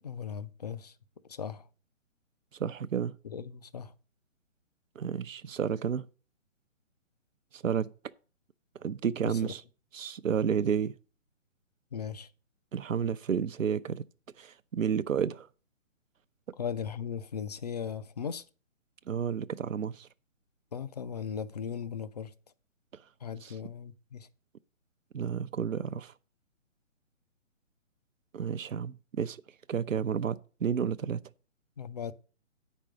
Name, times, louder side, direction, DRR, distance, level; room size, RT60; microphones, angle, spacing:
voice 1, 0.0-0.9 1.3-1.7 3.2-3.9 9.3-9.5 11.9-12.3 16.6-18.4 20.7-22.3 23.2-24.3 31.8-32.1, left 7 dB, 35° left, 0.5 m, -37 dB
voice 2, 2.6-3.2 5.0-6.1 7.5-7.9 8.8-9.6 9.9-10.9 12.7-14.0 14.4-15.5 19.1-20.1 23.4-23.5 25.1-26.1 28.3-29.4 29.7-31.2, right 7 dB, 80° right, 0.7 m, -31 dB
8.8 x 5.4 x 6.3 m
figure-of-eight pair, 140°, 38 cm